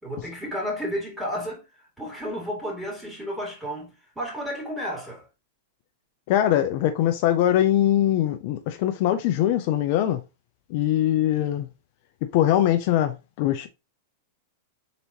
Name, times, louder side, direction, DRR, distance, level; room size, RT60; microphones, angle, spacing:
voice 1, 0.0-5.3, equal, 5° right, 2.6 m, -32 dB
voice 2, 6.3-10.2 10.7-11.7 12.3-13.7, left 12 dB, 55° left, 0.5 m, -22 dB
4.0 x 4.0 x 3.0 m
hypercardioid pair, 125°, 0 cm